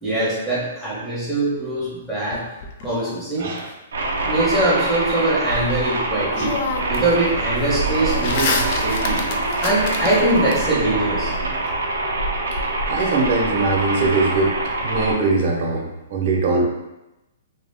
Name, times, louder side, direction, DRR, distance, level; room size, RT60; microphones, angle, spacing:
voice 1, 0.0-2.4 2.8-3.5 4.2-6.6 6.9-9.2 9.6-11.3, right 2 dB, ahead, -9 dB, 0.9 m, -22 dB
sound 1, 2.3-3.6 5.8-5.9 6.3-7.1 7.4-10.6, left 4 dB, 50° left, 0.3 m, -29 dB
voice 2, 3.4-3.7 12.8-14.5 14.8-16.6, right 3 dB, 50° right, -1 dB, 0.7 m, -21 dB
sound 2, 3.9-15.1, right 2 dB, 85° right, 0.5 m, -24 dB
2.3 x 2.1 x 3.3 m, 0.96 s
hypercardioid pair, 150°, 0 cm